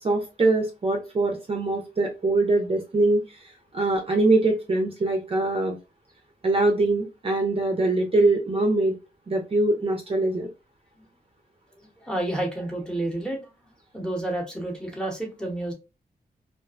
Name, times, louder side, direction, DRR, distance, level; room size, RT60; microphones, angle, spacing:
voice 1, 0.0-5.8 6.4-9.0 9.3-10.5, right 2 dB, 35° right, 2 dB, 0.5 m, -23 dB
voice 2, 12.0-13.5 13.9-15.7, right 1 dB, 5° left, 0 dB, 0.8 m, -30 dB
2.4 x 2.2 x 2.4 m, 0.28 s
wide cardioid pair, 100°, 16 cm